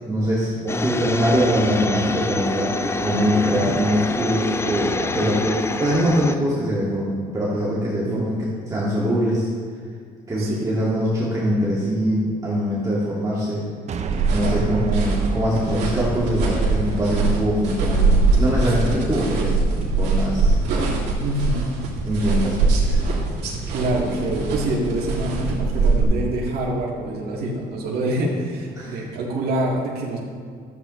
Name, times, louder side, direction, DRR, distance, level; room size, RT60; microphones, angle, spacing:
voice 1, 0.1-8.4 8.7-9.5 10.3-13.7 14.3-20.5 22.1-23.0 28.8-28.9, equal, 20° right, -7 dB, 2.0 m, -23 dB
sound 1, 0.7-6.4, left 3 dB, 15° left, 0.4 m, -26 dB
sound 2, 13.9-18.3, right 5 dB, 40° right, 0.7 m, -33 dB
sound 3, 14.0-26.0, right 3 dB, 85° right, 2.5 m, -22 dB
voice 2, 14.4-14.8 18.6-18.7 21.2-21.7 23.7-30.2, right 1 dB, 70° right, -3 dB, 1.9 m, -26 dB
13.0 x 8.2 x 3.1 m, 2.1 s
cardioid pair, 110°, 17 cm